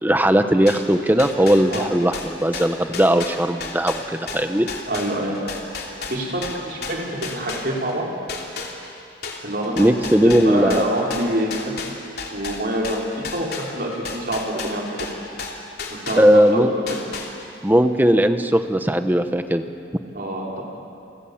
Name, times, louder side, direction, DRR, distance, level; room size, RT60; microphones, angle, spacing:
voice 1, 0.0-4.7 9.8-10.8 16.2-16.7 17.6-19.6, equal, 10° right, 8 dB, 1.0 m, -18 dB
sound 1, 0.7-8.0 8.3-16.5 16.9-17.7, left 4 dB, 55° left, 3.1 m, -33 dB
voice 2, 4.9-5.5 6.1-8.1 9.4-10.0 10.2-11.8 12.3-15.1 15.9-17.0 20.1-20.6, right 1 dB, 50° right, -2 dB, 5.3 m, -26 dB
29.5 x 24.0 x 7.3 m, 2.5 s
head